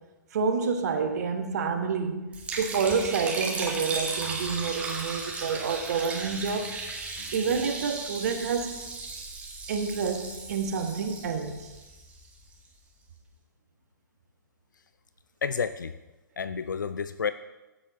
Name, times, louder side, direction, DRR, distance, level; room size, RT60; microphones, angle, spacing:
voice 1, 0.3-2.3 2.6-6.7 7.3-8.8 9.7-11.7, right 5 dB, 55° right, 5 dB, 1.5 m, -28 dB
Liquid, 2.3-12.5, right 3 dB, 15° right, 2.0 m, -36 dB
voice 2, 15.4-15.9 16.4-17.3, left 6 dB, 75° left, 13 dB, 0.5 m, -30 dB
15.5 x 7.8 x 4.1 m, 1.1 s
figure-of-eight pair, 115°, 10 cm